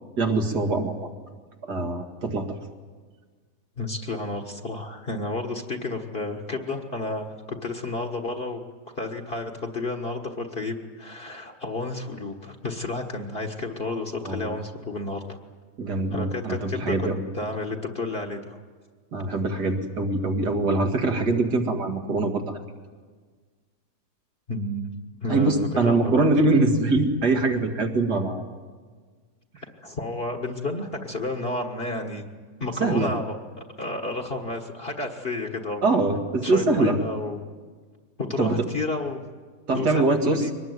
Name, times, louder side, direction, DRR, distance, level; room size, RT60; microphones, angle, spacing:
voice 1, 0.2-1.1 1.7-2.5 14.2-14.5 15.8-17.2 19.1-22.6 25.3-28.4 32.8-33.1 35.8-37.0 38.4-38.6 39.7-40.4, right 2 dB, 80° right, 4 dB, 2.6 m, -23 dB
voice 2, 3.8-8.6 9.0-15.4 16.1-18.6 24.5-24.9 25.2-26.3 29.8-32.2 32.6-35.8 36.4-37.4 38.2-39.2 39.7-40.5, left 2 dB, 35° left, 3 dB, 1.7 m, -31 dB
23.5 x 19.5 x 9.5 m, 1.5 s
omnidirectional pair, 1.7 m